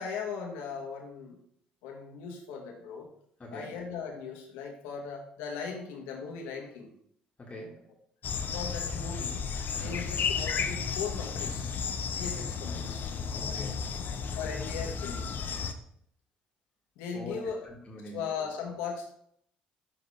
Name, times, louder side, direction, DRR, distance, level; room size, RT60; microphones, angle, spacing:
voice 1, 0.0-1.4 1.8-3.1 3.5-6.9 8.5-9.4 9.7-11.7 12.1-13.1 14.3-15.2 17.0-17.6 18.0-19.1, left 6 dB, 65° left, 0 dB, 1.6 m, -38 dB
voice 2, 3.4-3.8 7.4-7.9 9.7-10.0 13.3-13.9 17.1-17.3 17.6-18.3, left 1 dB, 25° left, -2 dB, 1.9 m, -44 dB
sound 1, 8.2-15.7, left 6 dB, 45° left, 0.7 m, -33 dB
11.0 x 3.8 x 3.4 m, 0.69 s
figure-of-eight pair, 50°, 4 cm